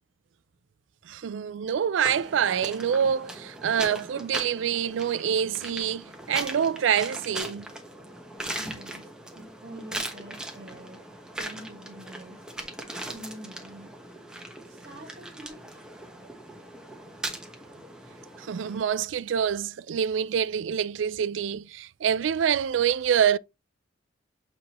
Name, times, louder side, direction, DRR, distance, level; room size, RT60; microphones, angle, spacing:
voice 1, 1.1-7.7 18.4-23.4, right 8 dB, 80° right, 0.4 m, -26 dB
sound 1, 2.0-18.8, right 1 dB, 5° right, 1.1 m, -39 dB
voice 2, 8.6-11.0 11.4-12.4 13.0-13.9 14.8-15.8, right 1 dB, 45° right, 1.6 m, -45 dB
7.3 x 4.3 x 3.0 m
head